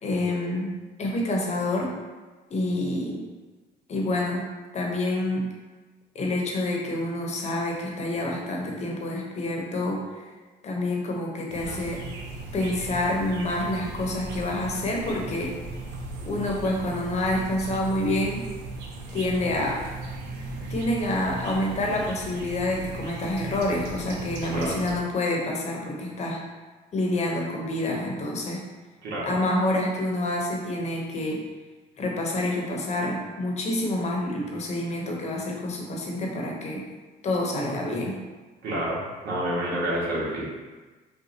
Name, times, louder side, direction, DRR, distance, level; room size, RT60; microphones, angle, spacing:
voice 1, 0.0-0.7 1.0-1.9 2.5-3.3 3.9-4.5 4.7-5.5 6.1-10.3 10.6-12.0 12.5-15.5 16.2-18.4 19.1-19.9 20.7-26.4 26.9-28.6 29.2-31.4 32.0-36.8 37.2-38.2, left 1 dB, 40° left, -1 dB, 0.9 m, -27 dB
sound 1, 11.5-25.0, right 2 dB, 85° right, 0.6 m, -37 dB
voice 2, 38.6-40.4, right 1 dB, 65° right, -6 dB, 1.5 m, -28 dB
5.6 x 2.4 x 2.8 m, 1.3 s
cardioid pair, 110°, 17 cm